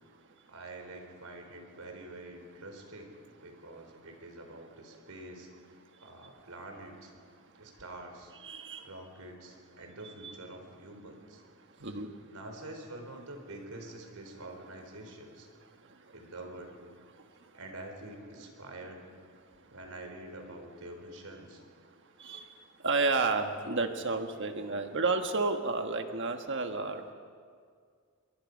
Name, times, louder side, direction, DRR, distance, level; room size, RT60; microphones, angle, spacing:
voice 1, 0.5-5.5 6.0-7.1 7.5-8.3 8.8-11.4 11.8-11.9 12.3-15.5 16.1-16.8 17.5-19.0 19.7-21.6, right 1 dB, 80° right, 4 dB, 4.1 m, -46 dB
voice 2, 8.4-8.9 10.2-10.3 11.8-12.1 16.1-16.2 22.2-22.5 22.8-27.1, right 3 dB, 55° right, 6 dB, 1.5 m, -31 dB
25.0 x 22.5 x 5.3 m, 2.1 s
head